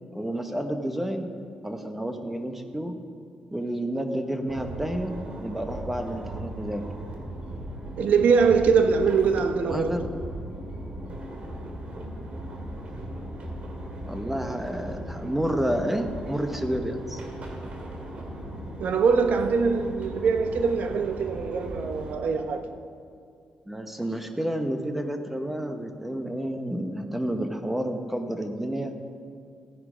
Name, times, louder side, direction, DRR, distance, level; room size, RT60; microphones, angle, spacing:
voice 1, 0.1-1.3 1.6-2.9 3.5-6.8 9.6-10.1 14.1-17.2 23.7-28.9, right 1 dB, 5° right, 0.9 m, -30 dB
sound 1, 4.5-22.1, right 1 dB, 50° right, 2.1 m, -37 dB
voice 2, 8.0-10.0 18.8-22.7, right 5 dB, 75° right, 0.9 m, -23 dB
15.5 x 10.0 x 5.0 m
cardioid pair, 135°, 3 cm